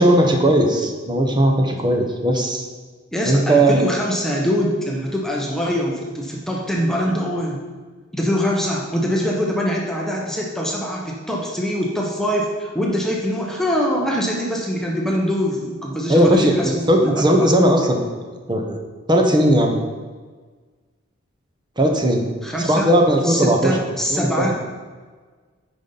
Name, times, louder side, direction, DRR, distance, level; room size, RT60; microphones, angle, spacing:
voice 1, 0.0-2.7 3.2-3.8 16.1-18.0 18.5-18.8 19.1-19.7 21.8-22.3 22.6-23.8 24.1-24.5, right 1 dB, 20° right, 2 dB, 0.9 m, -17 dB
voice 2, 3.1-7.6 8.1-17.5 22.4-22.9 23.2-24.5, equal, ahead, -3 dB, 0.9 m, -23 dB
9.5 x 5.2 x 4.0 m, 1.4 s
head